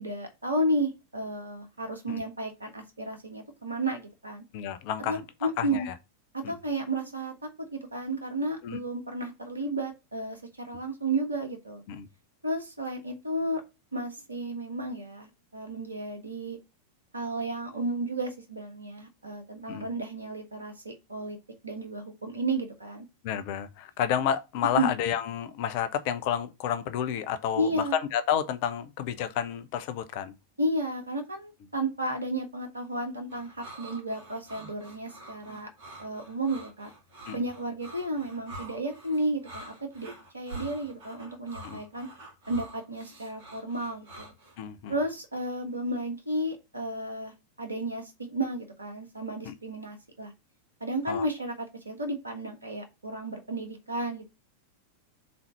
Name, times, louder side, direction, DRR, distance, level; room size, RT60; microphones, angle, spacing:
voice 1, 0.0-4.4 5.0-5.9 6.3-11.8 12.4-13.6 13.9-16.6 17.1-21.4 21.6-23.1 24.7-24.9 27.6-28.0 30.6-35.7 36.0-36.9 37.3-42.1 42.5-44.3 44.9-50.3 50.8-54.2, right 1 dB, 80° right, 1.5 m, -33 dB
voice 2, 4.5-5.9 6.4-6.6 8.6-8.8 11.9-12.1 19.7-19.9 23.2-30.3 37.3-37.4 41.6-41.8 44.6-44.9 49.4-49.5 51.1-51.2, left 9 dB, 45° left, 0.7 m, -30 dB
sound 1, 33.3-44.6, right 1 dB, 50° right, 2.5 m, -46 dB
4.3 x 4.0 x 5.6 m
figure-of-eight pair, 90°, 0 cm